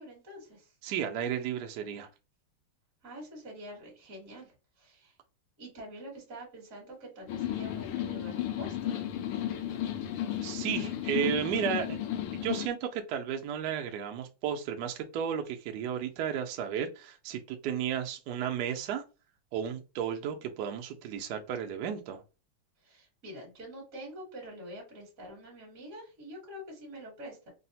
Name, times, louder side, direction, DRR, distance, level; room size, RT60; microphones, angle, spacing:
voice 1, 0.0-0.7 3.0-5.1 5.6-9.0 22.8-27.5, equal, 45° right, -1 dB, 1.5 m, -46 dB
voice 2, 0.8-2.1 10.4-12.0 12.3-19.0 19.5-22.2, right 8 dB, 80° right, 4 dB, 0.9 m, -33 dB
sound 1, 7.3-12.7, left 11 dB, 90° left, 1.5 m, -33 dB
3.8 x 2.0 x 2.7 m, 0.31 s
omnidirectional pair, 2.3 m